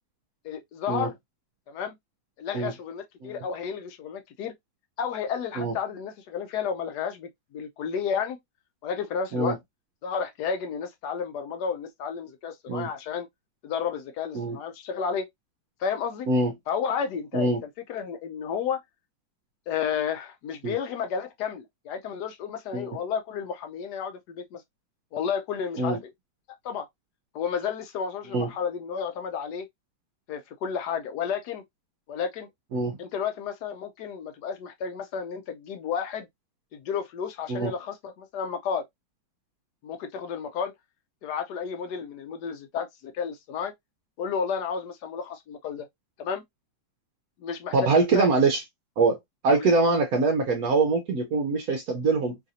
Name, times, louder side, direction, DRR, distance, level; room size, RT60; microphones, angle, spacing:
voice 1, 0.4-1.1 1.7-2.0 2.4-4.5 5.0-8.4 8.8-9.6 10.0-13.3 13.6-15.3 15.8-16.3 16.7-17.6 17.9-18.8 19.7-24.6 25.1-26.1 26.6-26.9 27.3-29.7 30.3-31.6 32.1-32.5 33.0-36.3 36.7-38.8 39.8-40.7 41.2-43.7 44.2-45.9 46.2-46.4 47.4-47.8 48.1-48.3 49.6-49.7, left 7 dB, 70° left, 1.0 m, -32 dB
voice 2, 47.7-48.6 49.0-49.2 49.4-52.4, right 3 dB, 65° right, 0.9 m, -23 dB
3.2 x 2.5 x 2.6 m
omnidirectional pair, 2.0 m